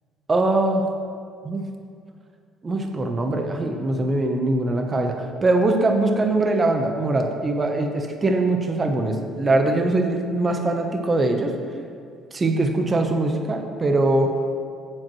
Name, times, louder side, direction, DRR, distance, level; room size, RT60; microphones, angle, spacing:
voice 1, 0.3-0.9 1.4-1.6 2.6-11.5 12.3-14.3, right 2 dB, 25° right, 3 dB, 0.9 m, -22 dB
16.5 x 7.7 x 3.1 m, 2.3 s
cardioid pair, 115°, 0 cm